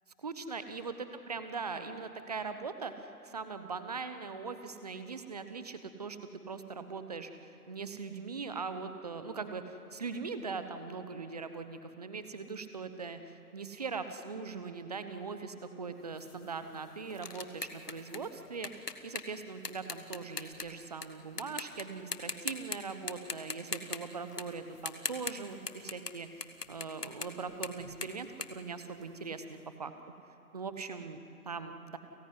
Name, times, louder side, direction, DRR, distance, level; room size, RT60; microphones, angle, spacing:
voice 1, 0.2-6.2 6.5-26.3 26.7-29.9 30.5-31.2 31.4-32.0, right 4 dB, 25° right, 10 dB, 1.0 m, -41 dB
sound 1, 16.2-21.1 21.4-21.8 22.1-22.8 23.1-26.1 26.4-29.4, left 4 dB, 85° left, 1.7 m, -40 dB
29.5 x 15.5 x 9.7 m, 3.0 s
figure-of-eight pair, 150°, 46 cm